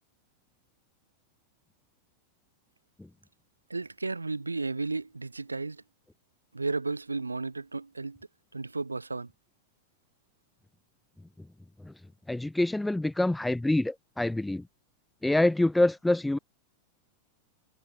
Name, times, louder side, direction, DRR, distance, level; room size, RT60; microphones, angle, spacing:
voice 1, 3.7-5.8 6.5-8.2 8.5-9.3, right 3 dB, 80° right, 1.8 m, -33 dB
voice 2, 12.3-14.6 15.2-16.4, left 1 dB, 5° left, 0.6 m, -26 dB
figure-of-eight pair, 90°, 0 cm